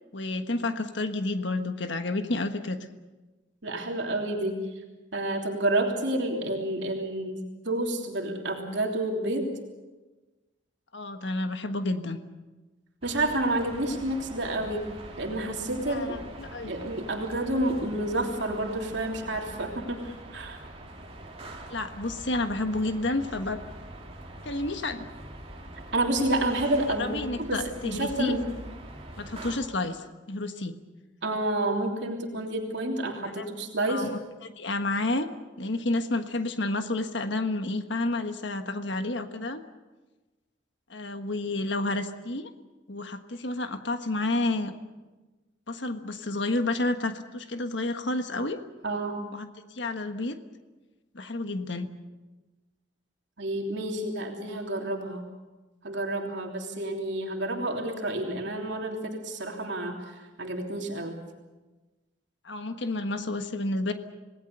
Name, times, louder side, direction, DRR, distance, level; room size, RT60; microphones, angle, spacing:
voice 1, 0.1-2.8 10.9-12.2 15.9-16.7 21.7-23.6 24.4-25.1 27.0-28.3 29.2-30.7 33.2-33.4 33.9-34.1 34.4-35.3 35.6-39.6 40.9-42.5 42.9-44.7 45.7-48.6 49.3-49.4 49.7-50.4 51.1-51.9 62.4-63.9, left 2 dB, 65° left, 7 dB, 1.5 m, -30 dB
voice 2, 3.6-4.6 5.1-9.5 13.0-14.9 15.2-16.2 16.7-20.6 25.9-28.4 31.2-34.1 48.8-49.2 53.4-55.2 55.8-61.2, right 1 dB, 65° right, 1 dB, 3.2 m, -29 dB
sound 1, 13.0-29.6, right 1 dB, 30° right, 3.3 m, -44 dB
27.5 x 19.0 x 6.9 m, 1.2 s
head